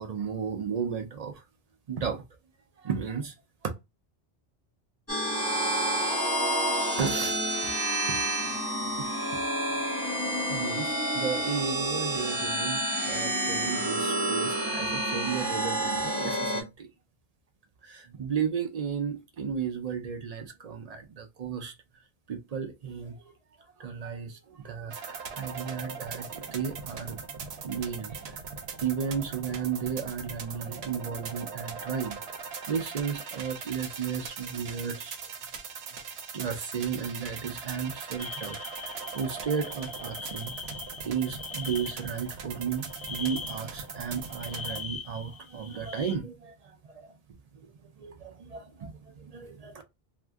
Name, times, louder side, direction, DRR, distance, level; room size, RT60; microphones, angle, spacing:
voice 1, 0.0-1.4 1.9-2.2 2.8-3.3 7.0-7.8 8.1-8.2 9.0-9.1 10.5-16.9 17.8-21.7 22.3-23.2 23.8-27.2 27.6-28.2 28.8-32.2 32.7-35.2 36.3-38.6 38.8-40.5 41.0-47.1 47.6-47.7 48.0-49.8, right 6 dB, 50° right, 0.5 m, -34 dB
sound 1, 5.1-16.6, right 1 dB, 15° left, 0.7 m, -29 dB
sound 2, 24.9-44.8, right 5 dB, 85° right, 0.9 m, -40 dB
sound 3, 38.2-42.3 42.8-46.1, left 5 dB, 40° left, 0.4 m, -42 dB
2.5 x 2.1 x 3.3 m
omnidirectional pair, 1.0 m